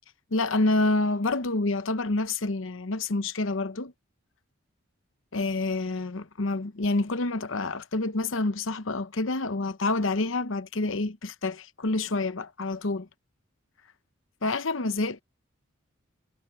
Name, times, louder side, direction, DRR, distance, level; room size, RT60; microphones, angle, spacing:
voice 1, 0.3-3.9 5.3-13.1 14.4-15.2, left 2 dB, 65° left, 0.9 m, -28 dB
head